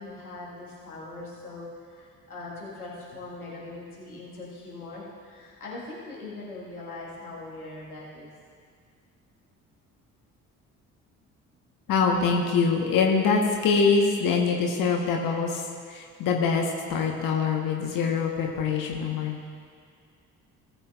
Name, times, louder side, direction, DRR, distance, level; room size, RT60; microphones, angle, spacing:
voice 1, 0.0-8.3, left 2 dB, 85° left, -6 dB, 1.8 m, -41 dB
voice 2, 11.9-19.4, left 5 dB, 50° left, 2 dB, 1.2 m, -24 dB
18.0 x 8.0 x 2.4 m, 2.1 s
figure-of-eight pair, 45°, 43 cm